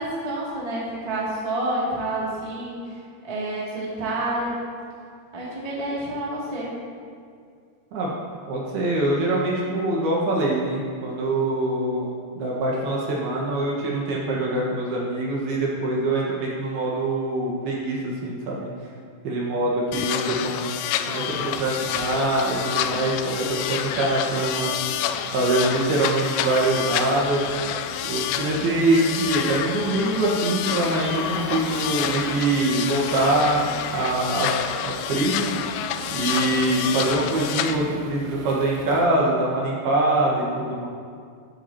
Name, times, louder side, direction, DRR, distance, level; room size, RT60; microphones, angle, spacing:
voice 1, 0.0-3.0 3.2-4.6 5.3-6.7, right 1 dB, 15° right, -7 dB, 1.1 m, -28 dB
voice 2, 8.5-18.7 19.2-20.7 21.1-24.7 25.3-27.4 28.0-33.6 33.9-34.5 34.8-35.5 36.1-40.9, right 2 dB, 65° right, -4 dB, 3.1 m, -24 dB
sound 1, 19.9-37.7, left 10 dB, 90° left, 3.1 m, -29 dB
Waves surf, 21.2-39.1, right 4 dB, 90° right, 2.0 m, -41 dB
13.0 x 13.0 x 3.0 m, 2.2 s
omnidirectional pair, 5.4 m